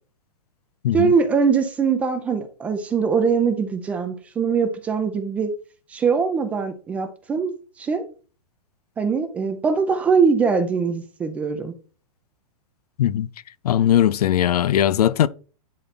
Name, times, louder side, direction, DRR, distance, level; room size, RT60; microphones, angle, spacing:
voice 1, 0.9-5.5 5.9-7.5 7.8-8.0 9.0-11.7, right 5 dB, 5° right, 0.4 m, -22 dB
voice 2, 13.6-15.3, left 11 dB, 75° left, 0.6 m, -19 dB
10.5 x 4.2 x 4.1 m
hypercardioid pair, 170°, 20 cm